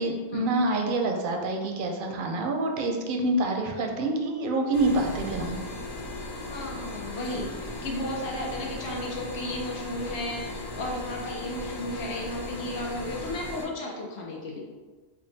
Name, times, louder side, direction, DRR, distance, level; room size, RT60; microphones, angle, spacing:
voice 1, 0.0-5.6, right 2 dB, 60° right, 2 dB, 0.6 m, -27 dB
sound 1, 4.7-13.6, left 2 dB, 55° left, 1.0 m, -37 dB
voice 2, 6.5-14.6, left 1 dB, 75° left, -2 dB, 1.0 m, -34 dB
3.5 x 2.3 x 4.0 m, 1.3 s
omnidirectional pair, 1.1 m